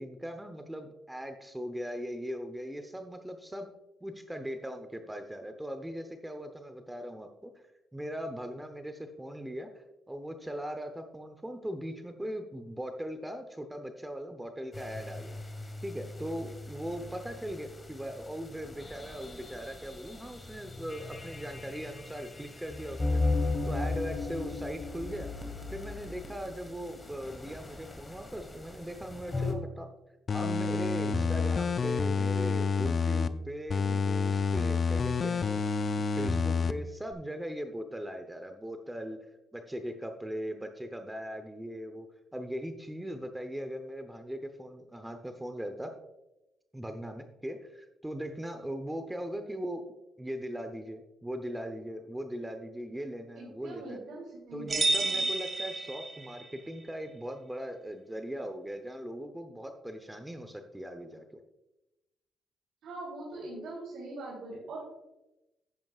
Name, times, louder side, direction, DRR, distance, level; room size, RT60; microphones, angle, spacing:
voice 1, 0.0-3.7 4.0-7.5 7.9-15.4 15.8-23.2 23.6-25.3 25.7-29.9 30.3-35.7 36.1-39.2 39.5-42.1 42.3-45.9 46.7-49.8 50.2-54.0 54.5-61.4, equal, 10° right, 7 dB, 0.9 m, -39 dB
sound 1, 14.7-29.5, left 3 dB, 25° left, 1.5 m, -37 dB
sound 2, 30.3-33.3 33.7-36.7 37.1-37.2, left 5 dB, 45° left, 0.5 m, -28 dB
voice 2, 53.4-55.3 62.8-65.0, right 2 dB, 75° right, -5 dB, 3.4 m, -42 dB
sound 3, 54.7-56.5, right 2 dB, 35° right, 2.0 m, -30 dB
11.0 x 9.1 x 2.5 m, 0.95 s
cardioid pair, 90°, 0 cm